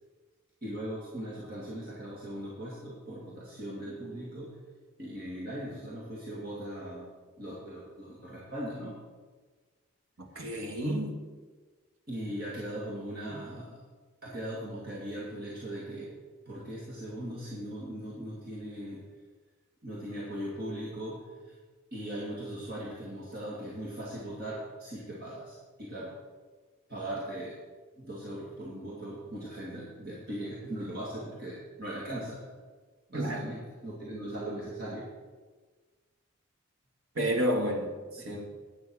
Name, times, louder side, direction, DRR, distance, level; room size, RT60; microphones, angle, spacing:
voice 1, 0.6-4.6 5.0-7.1 7.4-8.9 10.3-10.6 12.1-13.8 14.2-16.2 16.5-19.0 19.8-21.6 21.9-26.1 26.9-27.6 28.0-32.5 33.1-35.1 38.2-38.4, right 1 dB, 45° right, -6 dB, 2.2 m, -39 dB
voice 2, 10.2-11.2 13.3-13.4 33.1-33.5 37.2-38.5, equal, 80° right, 2 dB, 2.0 m, -31 dB
10.0 x 9.2 x 6.2 m, 1.4 s
head